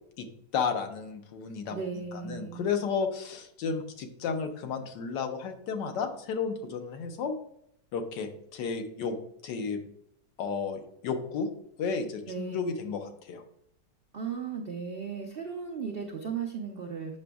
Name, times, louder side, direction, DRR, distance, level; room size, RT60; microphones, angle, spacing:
voice 1, 0.5-1.8 2.1-7.3 7.9-9.2 9.4-9.8 10.4-11.5 11.8-13.4, left 5 dB, 85° left, 6 dB, 1.4 m, -32 dB
voice 2, 1.7-2.7 12.3-12.6 14.1-17.2, right 6 dB, 85° right, 2 dB, 0.5 m, -36 dB
7.9 x 6.0 x 2.3 m, 0.74 s
omnidirectional pair, 1.9 m